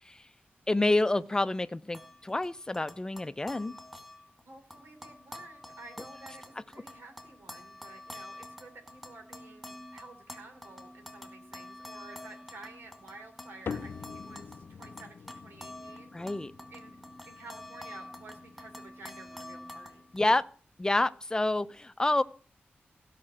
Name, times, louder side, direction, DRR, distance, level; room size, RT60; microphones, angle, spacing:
voice 1, 0.7-3.7 16.1-16.5 20.1-20.4 20.8-22.2, left 2 dB, 20° left, 14 dB, 0.6 m, -28 dB
sound 1, 1.9-4.4 4.7-20.2, left 1 dB, 5° right, 2.4 m, -48 dB
voice 2, 4.4-16.2 16.7-17.0 17.3-20.0, right 3 dB, 75° right, 4 dB, 3.4 m, -51 dB
sound 2, 13.7-20.4, left 6 dB, 70° left, 0.7 m, -46 dB
16.0 x 5.9 x 7.6 m, 0.42 s
wide cardioid pair, 130°, 4 cm